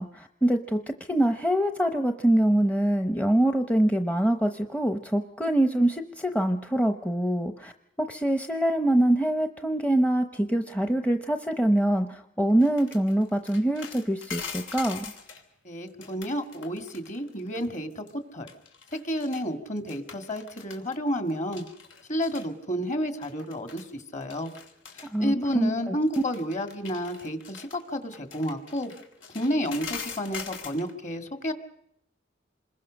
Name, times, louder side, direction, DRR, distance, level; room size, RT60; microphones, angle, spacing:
voice 1, 0.0-7.7 8.0-15.1 25.1-26.0, right 1 dB, 5° left, 7 dB, 0.8 m, -24 dB
sound 1, 12.6-15.4 15.9-17.7 17.9-18.1 18.5-19.4 19.8-21.0 21.3-22.5 23.2-23.9 24.2-25.1 26.1-30.9, left 6 dB, 85° left, 3.1 m, -42 dB
voice 2, 15.6-18.0 18.3-18.5 18.9-21.6 22.1-24.5 24.9-28.9 29.3-31.5, equal, 40° left, 8 dB, 2.2 m, -30 dB
27.0 x 21.5 x 6.4 m, 0.77 s
head